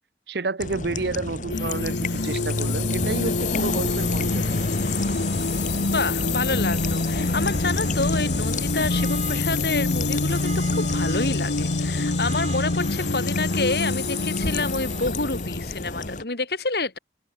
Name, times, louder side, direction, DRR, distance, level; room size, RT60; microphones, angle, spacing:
voice 1, 0.3-4.7, right 3 dB, 70° right, 0.9 m, -30 dB
sound 1, 0.6-16.2, left 2 dB, 45° left, 2.2 m, -32 dB
sound 2, 1.5-16.2, left 3 dB, 85° left, 1.2 m, -26 dB
sound 3, 3.9-15.1, right 5 dB, 40° right, 6.1 m, -43 dB
voice 2, 5.9-17.0, left 3 dB, 65° left, 2.5 m, -28 dB
head